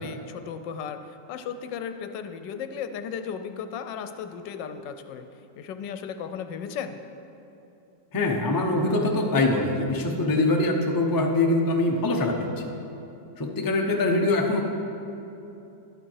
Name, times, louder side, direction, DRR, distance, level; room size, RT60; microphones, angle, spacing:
voice 1, 0.0-5.3 5.6-7.0, left 7 dB, 80° left, 8 dB, 1.3 m, -35 dB
voice 2, 8.1-12.5 13.4-14.6, left 2 dB, 20° left, 0 dB, 0.6 m, -23 dB
12.0 x 9.0 x 4.7 m, 2.9 s
omnidirectional pair, 1.9 m